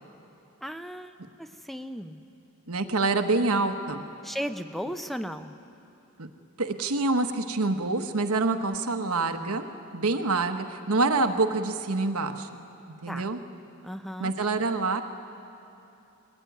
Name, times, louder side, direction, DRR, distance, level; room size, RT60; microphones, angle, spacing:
voice 1, 0.6-2.2 4.2-5.6 13.1-13.3 13.8-14.3, equal, ahead, 9 dB, 0.6 m, -36 dB
voice 2, 2.7-4.0 6.2-6.3 6.6-12.5 13.0-13.4 14.2-15.0, right 3 dB, 90° right, 6 dB, 1.2 m, -26 dB
22.0 x 18.0 x 9.3 m, 2.9 s
head